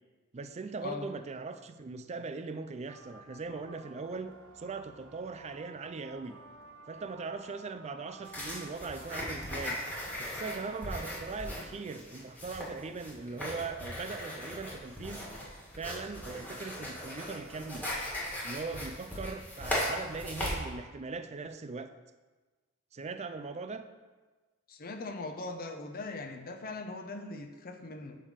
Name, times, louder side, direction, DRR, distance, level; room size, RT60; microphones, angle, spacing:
voice 1, 0.3-6.4 6.9-9.8 10.2-15.3 15.8-17.9 18.4-21.9 22.9-23.9, right 4 dB, 30° right, 10 dB, 0.4 m, -40 dB
sound 1, 2.9-11.5, right 3 dB, 75° right, 1.2 m, -53 dB
sound 2, 8.3-20.6, left 1 dB, 10° left, 1.8 m, -38 dB
voice 2, 24.7-28.2, left 3 dB, 45° left, 4 dB, 0.8 m, -40 dB
8.6 x 3.5 x 6.5 m, 1.3 s
head